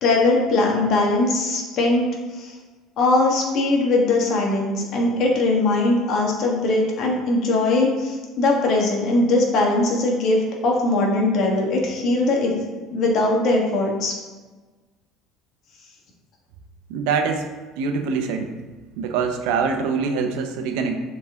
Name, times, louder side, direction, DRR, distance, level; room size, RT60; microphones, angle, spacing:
voice 1, 0.0-2.1 2.4-2.5 3.0-10.4 10.6-12.5 12.9-14.1, left 2 dB, 50° left, -1 dB, 1.4 m, -20 dB
voice 2, 16.9-17.5 17.8-18.5 19.0-21.0, right 5 dB, 85° right, 5 dB, 0.8 m, -24 dB
7.3 x 4.1 x 3.5 m, 1.3 s
cardioid pair, 135°, 0 cm